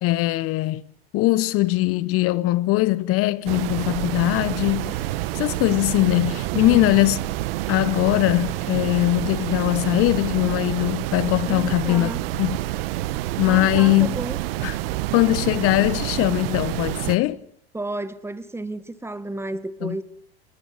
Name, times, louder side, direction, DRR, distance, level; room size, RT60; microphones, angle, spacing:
voice 1, 0.0-0.8 1.1-5.1 5.3-7.2 7.7-12.6 13.4-14.2 14.6-14.8 15.1-17.4 19.8-20.0, left 18 dB, 45° left, 1.1 m, -21 dB
sound 1, 3.5-17.2, right 16 dB, 65° right, 1.5 m, -28 dB
voice 2, 6.5-6.9 11.5-12.3 13.4-14.4 17.7-20.0, right 2 dB, 10° right, 1.8 m, -32 dB
26.5 x 20.5 x 9.8 m
hypercardioid pair, 95°, 32 cm